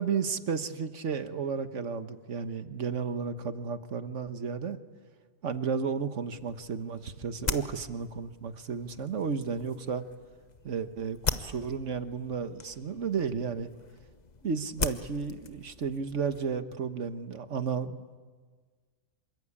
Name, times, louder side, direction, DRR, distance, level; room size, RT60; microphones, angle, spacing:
voice 1, 0.0-4.8 5.4-10.1 10.6-13.7 14.4-18.2, right 6 dB, 70° right, 10 dB, 1.6 m, -33 dB
sound 1, 6.3-16.6, left 4 dB, 35° left, 1.1 m, -40 dB
27.0 x 24.0 x 8.7 m, 1.5 s
omnidirectional pair, 1.3 m